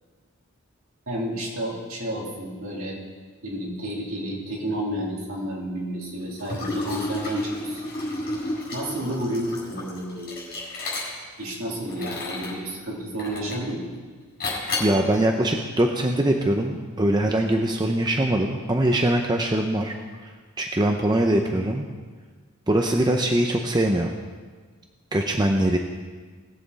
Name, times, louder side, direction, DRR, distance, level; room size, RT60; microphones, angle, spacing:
voice 1, 1.1-3.0 3.4-7.9 8.7-10.4 11.4-13.8, right 1 dB, 65° right, -5 dB, 3.4 m, -31 dB
Liquid, 6.4-11.4 11.9-12.6 13.2-13.7 14.4-15.0, left 2 dB, 45° left, 4.3 m, -31 dB
voice 2, 14.8-19.9 20.2-20.3 20.6-21.9 22.7-24.2 25.1-25.8, right 1 dB, 20° right, 2 dB, 0.6 m, -22 dB
20.0 x 7.6 x 4.1 m, 1.5 s
head